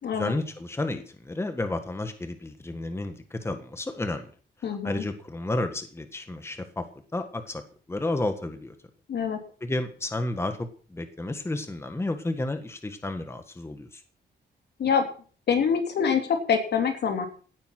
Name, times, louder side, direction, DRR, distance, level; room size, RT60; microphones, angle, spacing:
voice 1, 0.1-4.3 4.8-6.9 7.1-7.6 7.9-8.7 9.6-14.0, left 2 dB, 15° left, 8 dB, 1.5 m, -31 dB
voice 2, 4.6-5.0 9.1-9.4 14.8-15.0 15.5-17.3, left 6 dB, 70° left, 5 dB, 3.4 m, -25 dB
17.5 x 9.9 x 6.0 m, 0.41 s
wide cardioid pair, 130°, 18 cm